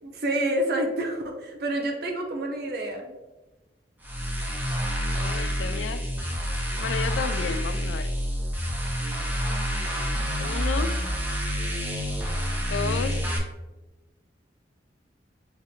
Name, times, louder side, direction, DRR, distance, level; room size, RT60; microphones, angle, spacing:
voice 1, 0.0-3.1, right 1 dB, 60° right, 2 dB, 0.7 m, -28 dB
sound 1, 4.0-13.4, equal, 10° right, 0.6 m, -28 dB
voice 2, 5.0-6.1 6.8-8.1 10.4-11.0 12.7-13.3, left 6 dB, 85° left, 12 dB, 0.3 m, -32 dB
6.1 x 2.6 x 2.7 m, 1.1 s
head